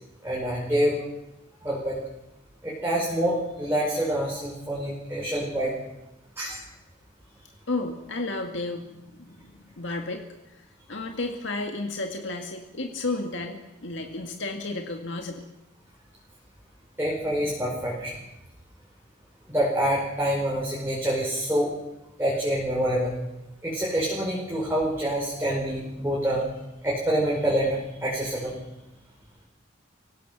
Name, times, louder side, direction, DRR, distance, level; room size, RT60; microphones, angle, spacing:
voice 1, 0.2-1.0 1.6-2.0 2.6-5.7 6.4-6.6 17.0-18.1 19.5-21.7 22.2-23.1 23.6-26.4 26.8-28.5, right 1 dB, 10° right, -5 dB, 5.1 m, -26 dB
voice 2, 7.7-10.6 10.9-15.4, left 2 dB, 60° left, 3 dB, 2.0 m, -32 dB
25.0 x 17.0 x 6.2 m, 0.95 s
head